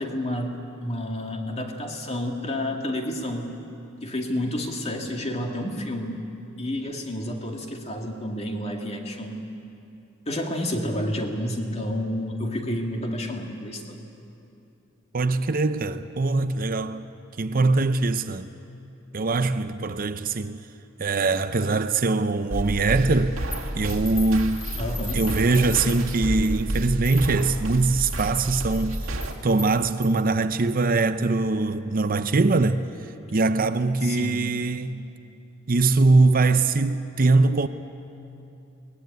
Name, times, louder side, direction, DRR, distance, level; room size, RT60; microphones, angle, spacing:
voice 1, 0.0-3.5 4.0-6.2 6.6-9.4 10.3-14.0 24.8-25.2 34.0-34.5, left 1 dB, 30° left, 2.2 m, -30 dB
voice 2, 15.1-17.1 17.4-18.5 19.1-20.6 21.0-23.4 23.7-24.6 25.1-29.0 29.4-32.8 33.3-35.0 35.7-37.7, right 3 dB, 45° right, 0.6 m, -22 dB
sound 1, 22.5-29.3, right 1 dB, 90° right, 2.4 m, -30 dB
sound 2, 23.5-30.4, left 3 dB, 15° left, 2.4 m, -41 dB
22.5 x 19.0 x 9.3 m
head